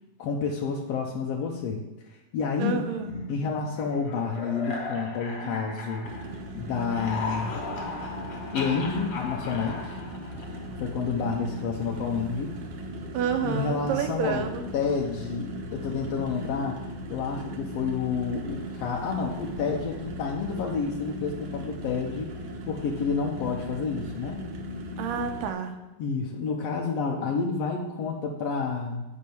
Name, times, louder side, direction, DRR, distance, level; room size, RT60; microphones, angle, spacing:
voice 1, 0.2-1.8 2.1-2.9 3.3-6.1 6.5-7.6 8.5-10.0 10.8-12.5 13.4-14.4 14.7-16.8 17.1-22.3 22.7-24.4 26.0-29.0, left 5 dB, 65° left, 0 dB, 1.6 m, -29 dB
voice 2, 2.6-3.2 5.4-5.8 13.1-14.6 25.0-25.7, right 6 dB, 75° right, 6 dB, 2.6 m, -29 dB
sound 1, 3.0-6.5 6.8-10.8, left 3 dB, 45° left, 2.8 m, -37 dB
sound 2, 6.0-25.5, equal, 60° right, 1.8 m, -38 dB
8.9 x 6.5 x 7.0 m, 1.1 s
omnidirectional pair, 4.0 m